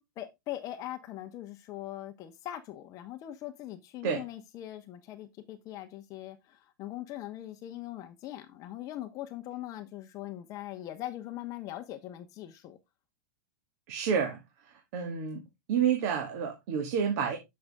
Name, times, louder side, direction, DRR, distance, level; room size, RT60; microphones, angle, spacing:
voice 1, 0.2-12.8, left 13 dB, 35° left, 1.2 m, -41 dB
voice 2, 13.9-14.4 14.9-15.4 15.7-17.4, right 7 dB, 55° right, 2.3 m, -29 dB
7.8 x 6.8 x 3.6 m
hypercardioid pair, 135°, 10 cm